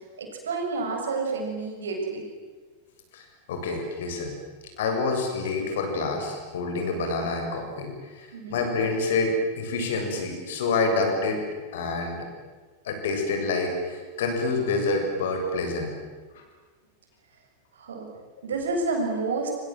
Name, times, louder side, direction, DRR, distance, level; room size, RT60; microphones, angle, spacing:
voice 1, 0.2-2.2 8.3-8.6 17.8-18.1 18.4-19.5, right 3 dB, 65° right, 2 dB, 7.5 m, -29 dB
voice 2, 3.5-4.4 4.8-11.4 11.7-12.2 12.8-15.9, left 3 dB, 55° left, 4 dB, 7.4 m, -27 dB
28.0 x 26.5 x 7.9 m, 1.4 s
figure-of-eight pair, 90°, 0 cm